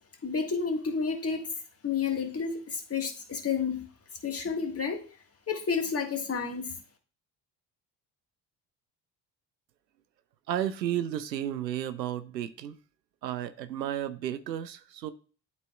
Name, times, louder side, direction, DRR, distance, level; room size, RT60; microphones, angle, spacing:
voice 1, 0.2-3.9 4.2-5.2 5.5-6.8, left 5 dB, 30° left, 1.7 m, -31 dB
voice 2, 10.5-12.8 13.2-15.1, right 11 dB, 90° right, 0.6 m, -33 dB
11.5 x 4.2 x 2.3 m
figure-of-eight pair, 55°, 49 cm